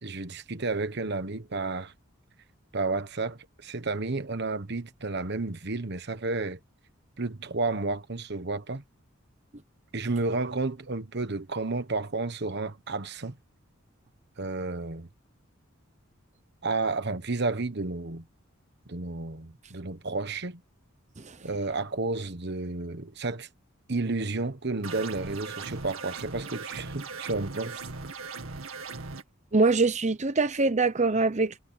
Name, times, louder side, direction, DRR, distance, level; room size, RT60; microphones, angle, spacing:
voice 1, 0.0-1.9 2.7-6.6 7.2-8.8 9.9-13.3 14.4-15.1 16.6-18.2 18.9-20.6 21.4-23.5 23.9-27.8, right 3 dB, 55° right, 1.3 m, -31 dB
sound 1, 24.8-29.2, right 4 dB, 85° right, 2.2 m, -39 dB
voice 2, 29.5-31.6, right 3 dB, 35° right, 0.8 m, -24 dB
head